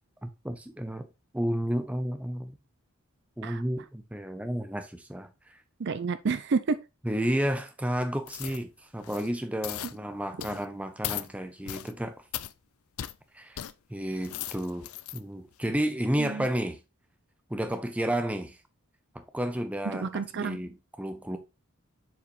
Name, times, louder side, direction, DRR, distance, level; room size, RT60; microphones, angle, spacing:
voice 1, 0.2-1.1 1.3-2.6 3.4-5.6 7.0-12.2 13.3-13.6 13.9-16.8 17.5-18.6 19.1-21.4, equal, 5° right, 0.7 m, -32 dB
voice 2, 5.8-6.8 9.8-9.9 16.2-16.5 19.9-20.6, right 4 dB, 55° right, 0.5 m, -30 dB
sound 1, 8.3-8.6 9.0-9.3 9.6-9.9 10.4-10.6 11.0-11.3 11.7-11.9 12.3-12.5 13.0-13.1 13.6-13.7 14.1-15.2 15.7-15.8, left 12 dB, 75° left, 0.4 m, -37 dB
7.1 x 4.8 x 3.1 m
head